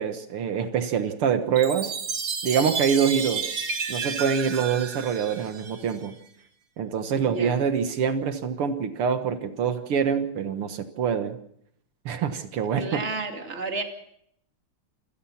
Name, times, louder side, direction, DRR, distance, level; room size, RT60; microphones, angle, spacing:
voice 1, 0.0-1.9 2.4-3.6 3.9-6.1 6.8-11.4 12.1-13.0, right 7 dB, 80° right, 8 dB, 2.3 m, -25 dB
Chime, 1.6-6.1, right 5 dB, 55° right, 2.4 m, -31 dB
voice 2, 7.2-7.6 12.8-13.8, right 3 dB, 30° right, 4 dB, 2.7 m, -32 dB
28.0 x 18.0 x 5.9 m, 0.70 s
omnidirectional pair, 2.4 m